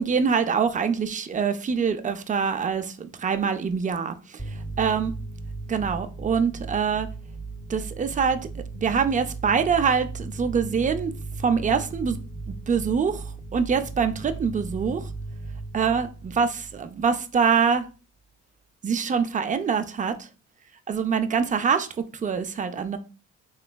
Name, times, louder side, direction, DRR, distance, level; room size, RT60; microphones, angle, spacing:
voice 1, 0.0-4.4 4.8-5.1 5.7-7.1 7.7-8.5 8.7-11.1 11.4-12.2 12.7-13.3 13.5-15.1 15.7-17.9 18.8-20.3 20.9-21.9 22.1-23.0, right 6 dB, 25° right, 0.4 m, -24 dB
sound 1, 4.4-17.6, right 3 dB, 5° left, 0.7 m, -37 dB
3.3 x 3.1 x 2.2 m
cardioid pair, 90°, 30 cm